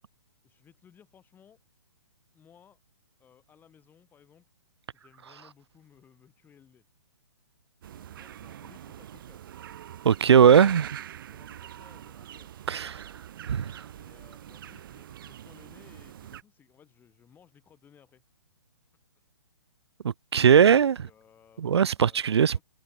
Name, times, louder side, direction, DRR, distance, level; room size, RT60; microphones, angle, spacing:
voice 1, 0.4-1.6 2.3-2.8 3.2-4.5 4.9-6.8 7.8-9.4 10.4-12.6 13.9-18.2 21.0-22.6, left 8 dB, 15° left, 6.0 m, -59 dB
sound 1, 7.8-16.4, right 11 dB, 50° right, 1.6 m, -44 dB
voice 2, 10.0-10.9 12.7-13.1 13.5-13.8 20.0-21.1 21.6-22.6, right 8 dB, 75° right, 0.6 m, -20 dB
hypercardioid pair, 145°, 14 cm